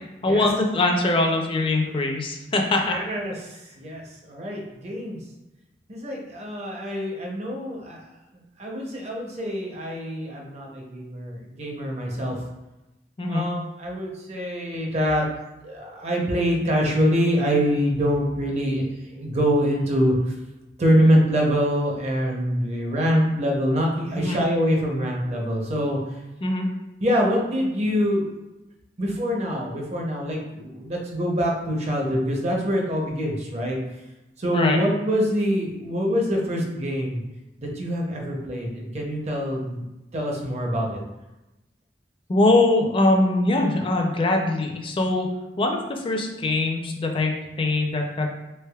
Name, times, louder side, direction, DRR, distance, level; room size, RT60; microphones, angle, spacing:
voice 1, 0.2-3.0 13.2-13.5 24.2-24.4 26.4-26.7 34.5-34.8 42.3-45.3 45.6-48.3, left 2 dB, 30° left, 2 dB, 0.4 m, -22 dB
voice 2, 2.9-5.2 5.9-8.0 8.6-12.4 13.3-15.3 15.6-18.8 19.1-20.2 20.8-26.0 27.0-28.3 29.0-33.8 34.4-37.2 37.6-39.9 40.1-41.0, equal, 40° right, -1 dB, 0.6 m, -24 dB
3.4 x 3.3 x 2.3 m, 0.99 s
head